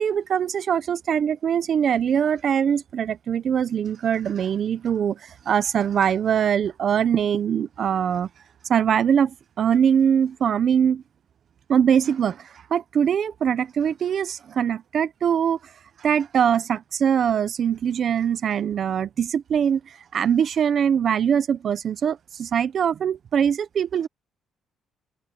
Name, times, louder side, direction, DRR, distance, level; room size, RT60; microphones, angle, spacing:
voice 1, 0.0-8.3 8.7-11.0 11.7-15.6 16.0-24.1, right 8 dB, 50° right, 0.6 m, -22 dB
cardioid pair, 145°, 0 cm